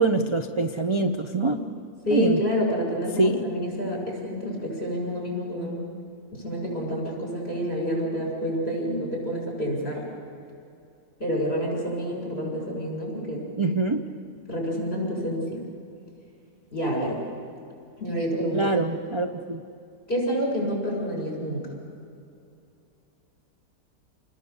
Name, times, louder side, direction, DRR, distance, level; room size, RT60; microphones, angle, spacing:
voice 1, 0.0-1.6 2.1-2.4 3.2-3.4 13.6-14.0 18.5-19.6, right 3 dB, 30° right, 6 dB, 0.6 m, -24 dB
voice 2, 2.0-5.8 6.3-10.1 11.2-13.5 14.5-15.6 16.7-17.2 18.0-18.7 20.1-21.7, equal, 40° left, -2 dB, 6.9 m, -28 dB
28.5 x 20.5 x 7.1 m, 2.6 s
omnidirectional pair, 1.6 m